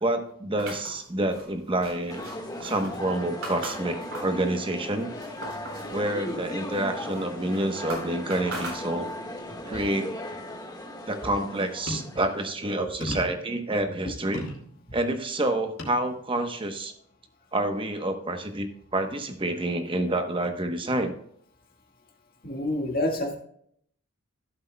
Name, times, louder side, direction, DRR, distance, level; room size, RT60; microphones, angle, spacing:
voice 1, 0.0-2.2 2.6-5.1 5.9-9.1 9.7-10.1 11.1-14.4 14.9-16.9 17.5-21.1, right 1 dB, 25° right, 7 dB, 0.9 m, -28 dB
sound 1, 0.6-4.4 4.8-5.9 6.3-9.3, right 2 dB, 70° right, 4.0 m, -40 dB
sound 2, 2.1-12.5, left 1 dB, 15° left, 1.6 m, -37 dB
sound 3, 11.9-12.2 13.0-13.5 14.3-14.7 15.8-16.0 16.7-16.8, left 1 dB, 70° left, 3.5 m, -34 dB
voice 2, 22.4-23.4, left 1 dB, 45° left, 0 dB, 1.8 m, -27 dB
15.5 x 7.9 x 2.2 m, 0.67 s
head